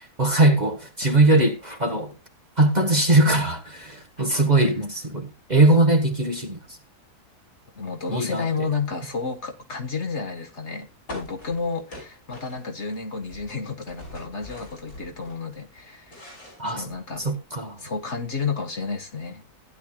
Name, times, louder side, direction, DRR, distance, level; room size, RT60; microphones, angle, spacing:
voice 1, 0.2-2.1 2.6-6.6 8.1-8.7 16.6-16.9 17.2-17.8, right 2 dB, 30° right, 1.4 m, -21 dB
voice 2, 7.7-17.3 17.8-19.4, left 5 dB, 45° left, 1.6 m, -31 dB
sound 1, 11.1-13.0 13.2-15.4 15.8-17.3, left 1 dB, 75° left, 6.4 m, -42 dB
16.0 x 10.5 x 2.3 m
omnidirectional pair, 1.6 m